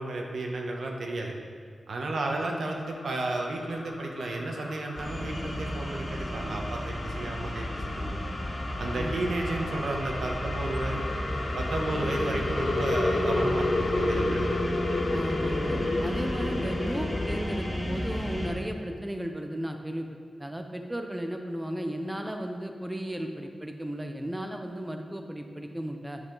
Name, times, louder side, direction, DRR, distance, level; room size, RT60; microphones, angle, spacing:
voice 1, 0.0-1.3 1.9-8.2 8.8-11.0 11.5-14.5, right 2 dB, 75° right, 1 dB, 1.0 m, -33 dB
sound 1, 2.6-17.8, left 2 dB, 60° left, 0.7 m, -33 dB
sound 2, 4.9-18.5, equal, 25° left, 2.0 m, -33 dB
voice 2, 15.1-20.1 20.4-26.2, equal, 10° right, 4 dB, 0.5 m, -35 dB
9.4 x 5.6 x 3.9 m, 2.2 s
wide cardioid pair, 110°, 0 cm